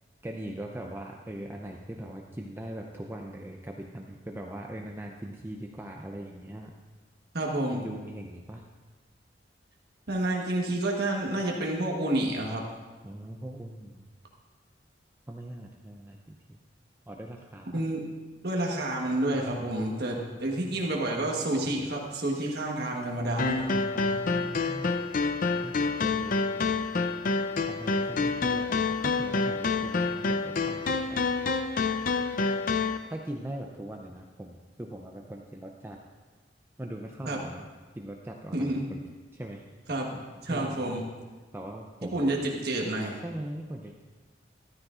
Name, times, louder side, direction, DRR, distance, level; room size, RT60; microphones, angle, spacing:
voice 1, 0.2-6.7 7.7-8.6 13.0-14.1 15.3-16.6 17.1-17.7 19.3-20.8 23.9-25.0 25.6-26.9 27.7-31.2 33.1-36.0 36.8-37.7 37.9-39.0 39.3-39.6 40.5-41.1 41.5-42.4 43.2-44.0, right 1 dB, 15° right, 1 dB, 0.5 m, -41 dB
voice 2, 7.3-7.9 10.1-12.6 17.7-18.0 18.4-23.8 37.3-37.4 38.5-38.9 39.9-41.1 42.1-43.2, right 1 dB, 60° right, -1 dB, 1.2 m, -29 dB
sound 1, 23.4-33.0, left 4 dB, 50° left, 0.5 m, -28 dB
13.5 x 12.5 x 2.5 m, 1.3 s
head